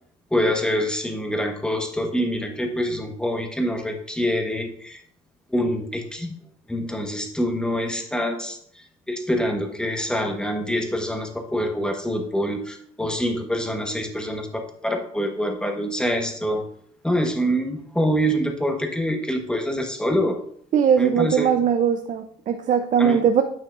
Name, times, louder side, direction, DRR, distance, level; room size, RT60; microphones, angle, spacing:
voice 1, 0.3-5.0 5.5-6.4 6.7-8.6 9.1-16.6 17.0-20.4 21.0-21.5 23.0-23.2, equal, 5° left, 3 dB, 1.1 m, -25 dB
voice 2, 20.7-23.4, right 8 dB, 50° right, 7 dB, 0.5 m, -20 dB
8.9 x 5.7 x 2.5 m, 0.65 s
cardioid pair, 110°, 17 cm